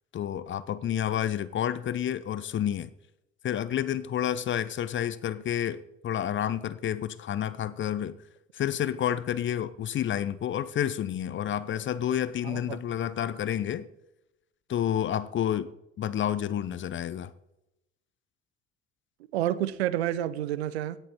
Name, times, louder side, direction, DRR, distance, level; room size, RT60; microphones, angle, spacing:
voice 1, 0.1-2.9 3.4-8.2 8.5-13.9 14.7-15.7 16.0-17.3, left 10 dB, 35° left, 16 dB, 0.7 m, -29 dB
voice 2, 12.4-12.8 19.3-21.0, right 12 dB, 75° right, 18 dB, 0.7 m, -29 dB
17.0 x 6.9 x 4.3 m, 0.86 s
figure-of-eight pair, 55°, 33 cm